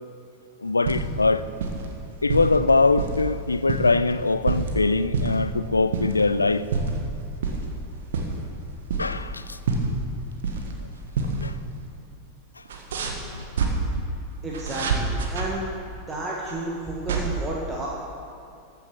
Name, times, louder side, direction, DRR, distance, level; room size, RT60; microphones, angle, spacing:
voice 1, 0.6-1.4 2.2-6.7 9.0-9.6 11.4-11.5 13.4-13.5, left 3 dB, 80° left, 14 dB, 0.4 m, -22 dB
sound 1, 0.6-1.3 1.6-1.9 2.3-3.2 3.5-4.7 5.1-5.5 5.9-6.2 6.5-7.0 7.4-7.6 8.0-9.4 9.7-10.8 11.1-11.4 11.7-11.8 12.7-13.7 14.5-15.5 16.4-17.2, right 4 dB, 60° right, 1.4 m, -27 dB
voice 2, 14.4-15.7 16.1-17.9, right 1 dB, 15° right, -4 dB, 1.6 m, -31 dB
14.0 x 7.1 x 6.0 m, 2.5 s
figure-of-eight pair, 90°, 0 cm